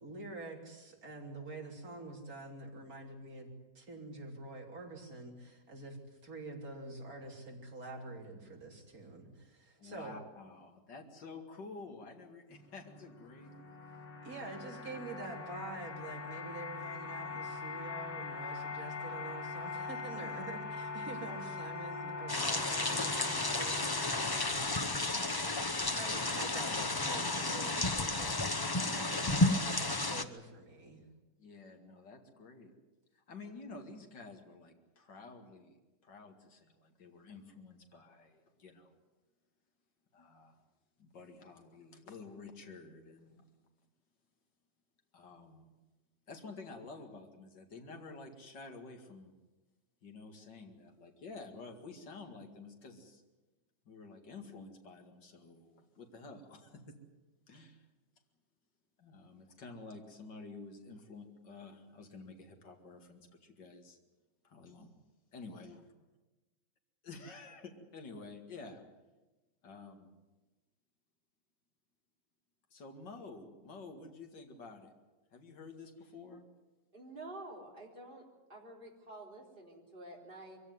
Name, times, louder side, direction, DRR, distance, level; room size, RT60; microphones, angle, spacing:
voice 1, 0.0-3.5 3.8-6.0 6.2-10.1 14.2-25.6 25.9-31.0, right 2 dB, 55° right, 1 dB, 3.9 m, -47 dB
voice 2, 9.8-13.5 31.4-32.7 33.1-35.8 36.0-39.0 40.1-40.6 41.0-43.5 45.1-45.7 46.3-49.3 50.0-53.2 53.9-57.0 57.5-57.9 59.0-64.0 64.4-64.9 65.3-65.8 67.0-68.8 69.6-70.1 72.7-74.9 75.3-76.4, left 3 dB, 85° left, 3 dB, 2.8 m, -50 dB
sound 1, 12.5-24.5, left 4 dB, 55° left, 2.9 m, -42 dB
sound 2, 22.3-30.2, left 2 dB, 25° left, 0.5 m, -32 dB
voice 3, 76.9-78.2 78.5-80.6, right 2 dB, 30° right, -1 dB, 4.1 m, -49 dB
23.5 x 16.0 x 9.5 m, 1.1 s
omnidirectional pair, 1.9 m